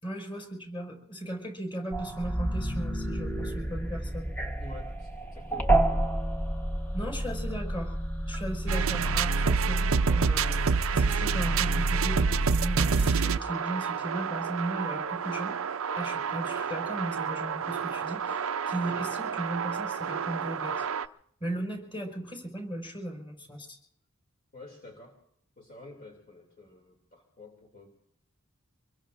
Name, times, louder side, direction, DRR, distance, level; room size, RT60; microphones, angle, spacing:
voice 1, 0.0-4.3 6.9-8.0 8.3-21.1 21.4-23.8, right 1 dB, 25° left, 2 dB, 5.3 m, -37 dB
sound 1, 1.9-9.2, right 1 dB, 10° left, 1.2 m, -30 dB
voice 2, 4.6-5.8 24.5-25.2 25.6-27.9, left 2 dB, 45° left, 0 dB, 2.8 m, -49 dB
sound 2, 8.7-21.1, right 5 dB, 70° right, 0.5 m, -28 dB
26.0 x 21.5 x 2.6 m, 0.68 s
head